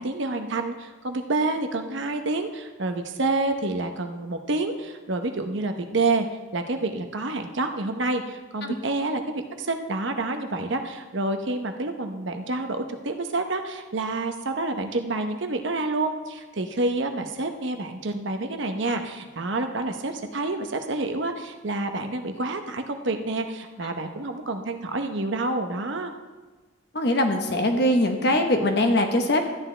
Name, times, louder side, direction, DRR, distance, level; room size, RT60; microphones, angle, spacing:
voice 1, 0.0-6.3 6.5-26.1, right 2 dB, 65° right, 6 dB, 0.9 m, -28 dB
voice 2, 26.9-29.4, left 1 dB, 55° left, 4 dB, 1.1 m, -22 dB
13.0 x 9.9 x 3.3 m, 1.3 s
head